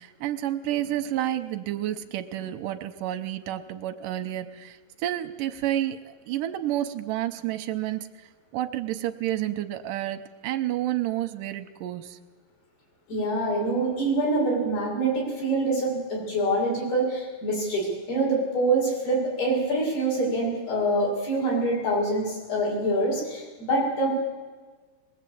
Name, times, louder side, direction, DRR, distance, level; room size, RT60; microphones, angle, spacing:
voice 1, 0.0-8.1 8.5-12.2, right 13 dB, 75° right, 8 dB, 2.0 m, -30 dB
voice 2, 13.1-24.1, right 2 dB, 70° left, -3 dB, 8.7 m, -25 dB
22.0 x 20.5 x 8.6 m, 1.4 s
omnidirectional pair, 4.7 m